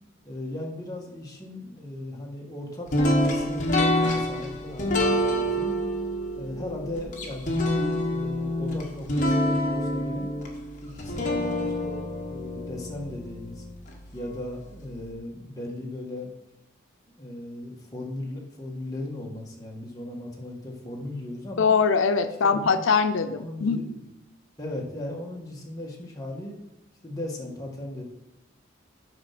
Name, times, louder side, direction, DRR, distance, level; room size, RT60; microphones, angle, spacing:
voice 1, 0.2-5.8 6.3-10.3 10.8-13.6 14.1-16.3 17.2-21.7 22.4-22.9 23.3-24.1 24.6-26.5 27.0-28.0, left 1 dB, 20° left, -2 dB, 1.6 m, -37 dB
sound 1, 2.9-14.0, left 1 dB, 40° left, 1.5 m, -27 dB
voice 2, 21.6-23.8, left 5 dB, 85° left, 9 dB, 0.6 m, -22 dB
8.9 x 5.3 x 5.9 m, 0.89 s
head